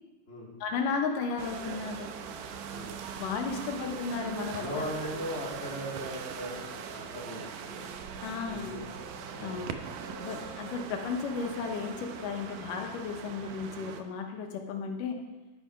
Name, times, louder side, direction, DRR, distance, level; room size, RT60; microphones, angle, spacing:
voice 1, 0.6-2.1 3.2-4.8 8.2-8.7 9.4-9.6 10.2-15.2, left 5 dB, 85° left, 4 dB, 2.8 m, -34 dB
sound 1, 1.4-14.0, right 7 dB, 80° right, 2.4 m, -41 dB
voice 2, 4.5-7.9 8.5-9.6, left 1 dB, 20° left, -4 dB, 2.8 m, -39 dB
11.5 x 9.4 x 5.3 m, 1.1 s
omnidirectional pair, 3.7 m